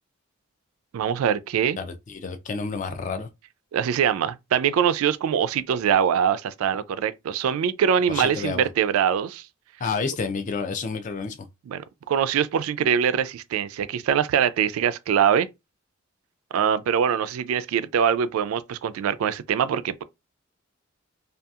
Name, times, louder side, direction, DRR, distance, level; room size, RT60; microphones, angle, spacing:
voice 1, 0.9-1.8 3.7-9.5 11.7-15.5 16.5-20.0, right 8 dB, 90° right, 0.3 m, -23 dB
voice 2, 1.8-3.3 8.1-8.7 9.8-11.5, left 5 dB, 35° left, 0.4 m, -30 dB
2.7 x 2.3 x 2.3 m
head